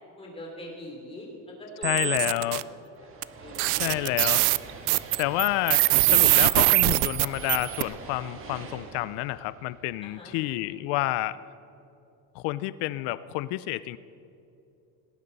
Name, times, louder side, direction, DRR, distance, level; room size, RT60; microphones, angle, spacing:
voice 1, 0.2-2.3 3.1-3.8 10.0-10.3, left 1 dB, 15° left, -1 dB, 3.3 m, -42 dB
voice 2, 1.8-2.6 3.7-4.5 5.2-11.4 12.3-14.0, left 17 dB, 85° left, 16 dB, 0.6 m, -29 dB
sound 1, 1.8-2.6 3.2-3.3 3.6-7.8, right 22 dB, 85° right, 0.5 m, -22 dB
sound 2, 3.0-10.4, right 4 dB, 35° right, 1.6 m, -43 dB
18.5 x 18.5 x 4.1 m, 2.7 s
cardioid pair, 165°, 38 cm